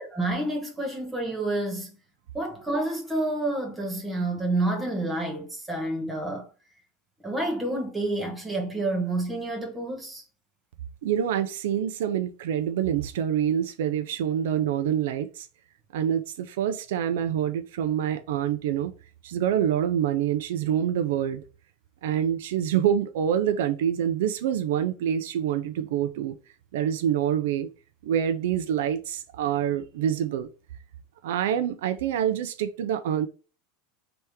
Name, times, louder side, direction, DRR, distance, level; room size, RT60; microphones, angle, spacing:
voice 1, 0.0-1.9 2.3-6.5 7.2-10.2, right 2 dB, 10° right, 1.2 m, -29 dB
voice 2, 11.0-15.5 15.9-18.9 19.2-21.4 22.0-26.4 26.7-27.7 28.0-30.5 31.2-33.3, right 9 dB, 80° right, 0.5 m, -26 dB
3.4 x 3.0 x 4.8 m
supercardioid pair, 150°, 0 cm